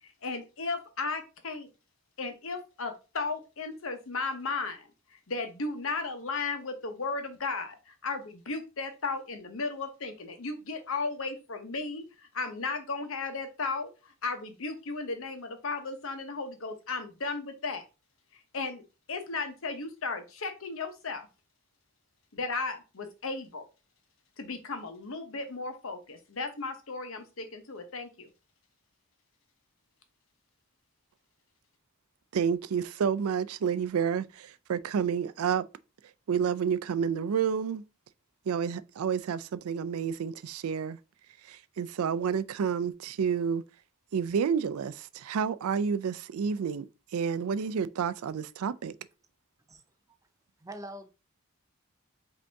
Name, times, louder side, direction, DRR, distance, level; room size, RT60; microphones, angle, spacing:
voice 1, 0.0-1.7 2.2-17.8 18.3-18.8 19.1-21.3 22.3-23.6 24.4-28.3, left 3 dB, 70° left, 0.9 m, -35 dB
voice 2, 32.3-35.7 36.3-37.8 38.5-41.0 41.4-43.6 44.1-48.9, right 7 dB, 85° right, 0.4 m, -30 dB
voice 3, 50.6-51.1, right 1 dB, 15° right, 0.5 m, -43 dB
5.1 x 2.8 x 3.4 m
head